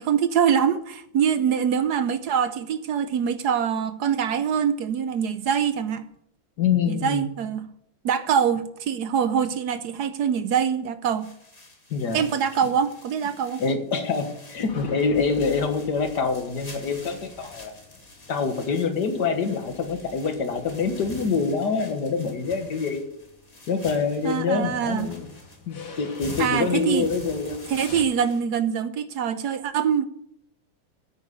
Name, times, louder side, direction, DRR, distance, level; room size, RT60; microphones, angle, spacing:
voice 1, 0.0-6.0 6.9-7.7 8.0-11.3 12.1-13.6 24.2-25.1 26.4-27.1 27.7-30.0, right 7 dB, 70° right, 12 dB, 1.0 m, -24 dB
voice 2, 6.6-7.3 11.9-12.2 13.6-17.7 18.3-23.1 23.7-25.3 25.7-27.6, left 5 dB, 50° left, 6 dB, 2.0 m, -25 dB
sound 1, 11.0-28.4, left 2 dB, 20° left, 1.7 m, -46 dB
sound 2, 14.5-28.0, left 4 dB, 90° left, 3.0 m, -47 dB
9.6 x 8.8 x 6.7 m, 0.73 s
omnidirectional pair, 2.4 m